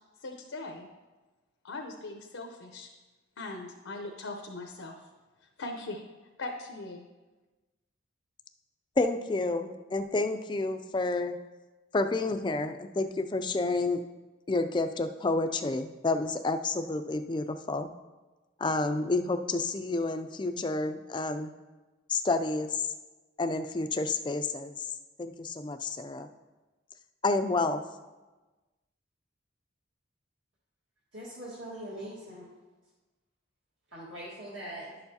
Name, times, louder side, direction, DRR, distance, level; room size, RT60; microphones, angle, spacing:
voice 1, 0.2-0.9 1.6-2.9 3.4-5.0 5.6-6.0 6.4-7.1, left 2 dB, 85° left, 2 dB, 0.7 m, -40 dB
voice 2, 9.0-11.4 11.9-14.0 14.5-17.9 18.6-21.5 22.1-22.8 23.4-24.9 25.2-26.3 27.2-27.8, left 3 dB, 25° left, 8 dB, 0.3 m, -29 dB
voice 3, 31.1-32.5 33.9-34.9, right 1 dB, 70° right, -8 dB, 1.7 m, -42 dB
11.0 x 6.8 x 2.8 m, 1.2 s
head